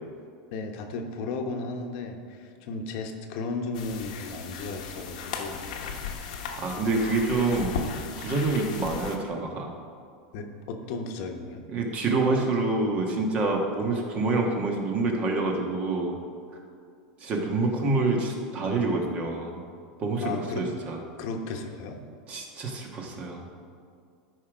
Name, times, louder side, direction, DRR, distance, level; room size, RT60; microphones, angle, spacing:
voice 1, 0.5-5.7 10.3-11.6 20.2-20.7 21.2-22.0, left 3 dB, 60° left, 4 dB, 1.1 m, -34 dB
sound 1, 3.7-9.2, left 6 dB, 80° left, 1.1 m, -36 dB
voice 2, 6.6-7.8 8.2-9.7 11.7-16.2 17.2-19.6 20.0-21.0 22.3-23.5, right 3 dB, 35° right, 1 dB, 1.5 m, -27 dB
12.5 x 5.0 x 5.1 m, 2.3 s
supercardioid pair, 135°, 4 cm